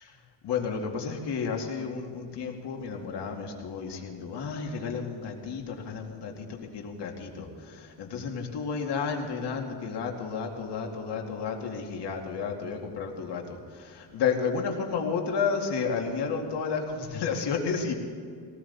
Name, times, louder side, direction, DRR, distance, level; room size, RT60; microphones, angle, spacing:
voice 1, 0.4-17.9, left 5 dB, 60° left, 1 dB, 2.3 m, -32 dB
18.5 x 18.5 x 4.2 m, 2.2 s
cardioid pair, 150°, 47 cm